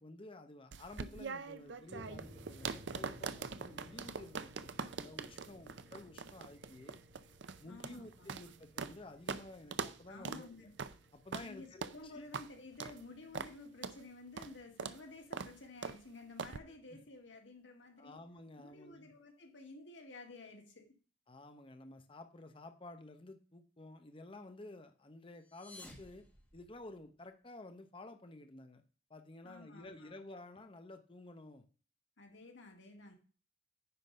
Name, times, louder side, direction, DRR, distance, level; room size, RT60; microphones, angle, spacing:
voice 1, 0.0-7.0 7.6-10.7 11.1-12.3 18.0-19.1 21.3-26.3 26.5-28.8 29.1-31.6, left 2 dB, 30° left, 0.8 m, -52 dB
sound 1, 0.7-9.0 9.3-9.4 9.7-10.0 10.2-10.4 10.8-11.0 11.3-11.5 11.8-12.0 12.3-12.5 12.8-13.0 13.3-13.5 13.8-14.0 14.4-14.5 14.8-15.0 15.3-15.5 15.8-16.0 16.4-16.6, right 5 dB, 75° right, 0.6 m, -42 dB
sound 2, 1.9-17.1, equal, 50° right, 1.5 m, -60 dB
voice 2, 7.7-8.3 10.1-10.7 11.4-18.2 18.6-20.9 29.4-30.1 32.2-33.1, left 3 dB, 85° left, 2.0 m, -53 dB
sound 3, 25.3-27.2, left 1 dB, 10° left, 2.0 m, -56 dB
9.7 x 3.9 x 5.5 m
head